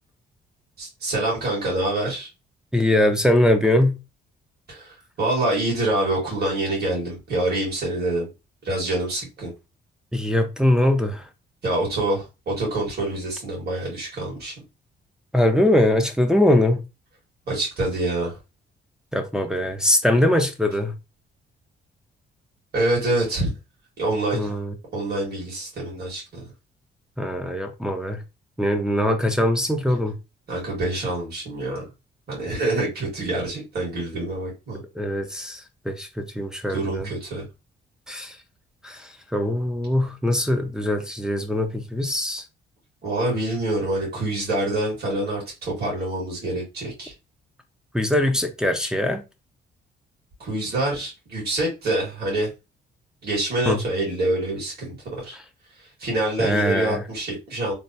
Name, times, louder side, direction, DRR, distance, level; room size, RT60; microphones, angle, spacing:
voice 1, 0.8-2.3 4.7-8.3 8.6-9.5 11.6-14.5 17.5-18.4 22.7-23.5 24.0-24.6 24.9-26.2 30.5-31.8 32.3-34.8 36.7-37.5 43.0-47.1 50.4-52.5 53.2-55.4 56.0-57.7, right 2 dB, 50° right, 1.8 m, -26 dB
voice 2, 2.7-4.0 10.1-11.2 15.3-16.8 19.1-20.9 24.3-24.7 27.2-28.2 28.6-30.1 35.0-35.6 35.9-37.1 38.1-38.3 38.8-39.0 39.3-42.4 47.9-49.2 53.7-53.8 56.4-57.0, left 1 dB, 5° right, 0.5 m, -21 dB
3.2 x 2.2 x 2.7 m
cardioid pair, 90°, 20 cm